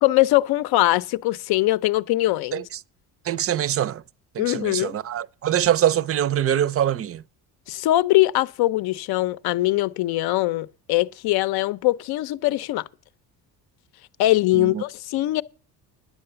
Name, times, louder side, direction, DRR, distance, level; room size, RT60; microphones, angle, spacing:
voice 1, 0.0-2.6 4.4-5.0 7.7-12.8 14.2-15.4, left 16 dB, 75° left, 0.6 m, -22 dB
voice 2, 3.2-4.0 4.3-7.2 14.5-14.8, right 10 dB, 40° right, 0.5 m, -24 dB
10.0 x 7.9 x 6.8 m
cardioid pair, 105°, 38 cm